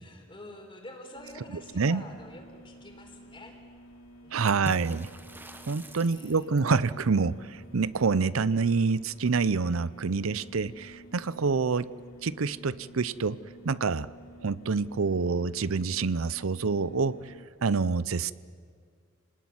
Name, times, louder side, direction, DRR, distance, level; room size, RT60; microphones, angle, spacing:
voice 1, 0.0-3.5 4.2-4.8 5.9-6.4, left 1 dB, 25° left, 3 dB, 4.1 m, -47 dB
sound 1, 1.2-17.4, equal, 80° left, 3.6 m, -52 dB
voice 2, 4.3-5.1 5.7-11.9 12.2-13.4 13.6-14.1 14.4-17.3 17.6-18.3, right 4 dB, 90° right, 18 dB, 0.6 m, -27 dB
Water / Splash splatter, 4.5-6.8, right 1 dB, 10° right, 1.3 m, -44 dB
27.5 x 19.5 x 9.5 m, 2.1 s
head